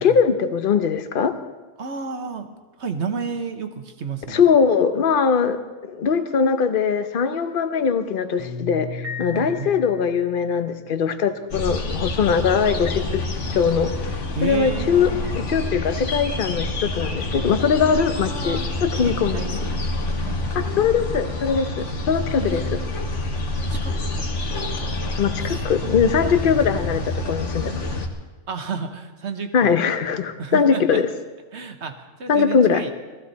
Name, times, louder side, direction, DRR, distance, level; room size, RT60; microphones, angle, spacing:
voice 1, 0.0-1.3 4.3-5.6 5.9-13.2 13.5-13.9 14.4-15.1 15.4-19.6 20.5-22.6 25.2-27.8 29.5-31.0 32.3-32.9, left 6 dB, 45° left, 9 dB, 0.9 m, -21 dB
voice 2, 1.8-2.5 2.8-4.5 9.3-9.7 14.3-15.3 18.1-18.6 19.0-19.8 20.2-20.5 22.4-22.9 23.3-23.4 23.7-24.1 25.4-26.1 28.5-29.8 30.4-31.0 31.5-32.9, right 5 dB, 55° right, 7 dB, 1.4 m, -32 dB
Piano, 8.4-12.8, left 4 dB, 30° left, 1.3 m, -39 dB
Piano 2, 9.0-10.5, left 5 dB, 75° right, 1.8 m, -38 dB
sound 1, 11.5-28.1, left 2 dB, 65° left, 1.6 m, -27 dB
19.0 x 14.5 x 4.1 m, 1.3 s
omnidirectional pair, 1.4 m